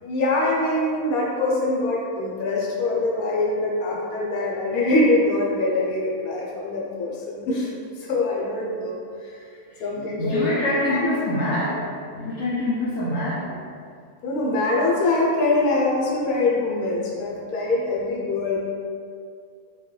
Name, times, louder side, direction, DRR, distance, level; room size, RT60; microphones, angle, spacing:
voice 1, 0.0-7.7 8.0-9.4 9.8-10.5 10.9-11.1 14.2-18.6, left 2 dB, 85° left, -3 dB, 1.2 m, -23 dB
voice 2, 9.7-13.5, left 1 dB, 65° left, -7 dB, 0.8 m, -26 dB
4.4 x 2.2 x 3.1 m, 2.3 s
omnidirectional pair, 1.5 m